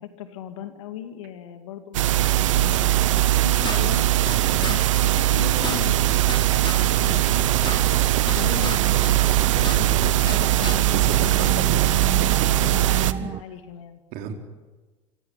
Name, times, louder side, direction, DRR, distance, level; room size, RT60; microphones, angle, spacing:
voice 1, 0.0-4.1 4.6-6.2 6.8-7.5 8.3-8.8 9.5-11.1 11.4-11.9 12.5-14.0, left 10 dB, 75° left, 9 dB, 2.4 m, -38 dB
sound 1, 1.9-13.1, right 14 dB, 80° right, 0.9 m, -20 dB
sound 2, 2.8-13.4, right 8 dB, 35° right, 0.9 m, -33 dB
sound 3, 3.2-4.4 4.6-4.8 5.0-5.1 5.4-6.8 7.1-8.8 9.0-10.4 10.6-10.8, left 4 dB, 30° left, 4.1 m, -34 dB
voice 2, 4.3-4.7 9.7-10.0 10.9-12.5 12.8-13.2 14.1-14.3, right 7 dB, 65° right, 5 dB, 3.9 m, -33 dB
25.5 x 17.0 x 10.0 m, 1.2 s
hypercardioid pair, 70°, 16 cm